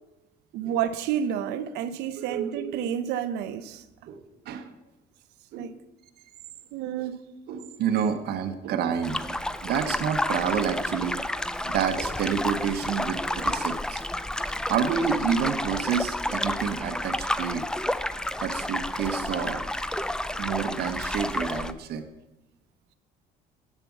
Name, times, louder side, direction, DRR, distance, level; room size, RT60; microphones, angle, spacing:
voice 1, 0.5-3.8 5.5-5.7 6.7-7.2, right 9 dB, 85° right, 0.6 m, -30 dB
voice 2, 2.3-2.8 4.1-4.2 4.5-4.7 5.5-5.7 7.0-7.1 7.5-9.3 9.6-11.2 11.6-14.0 14.7-17.6 18.4-19.6 20.4-22.1, right 7 dB, 70° right, 0.9 m, -29 dB
sound 1, 9.0-21.7, left 1 dB, 5° left, 0.4 m, -30 dB
8.3 x 6.9 x 7.2 m
cardioid pair, 110°, 17 cm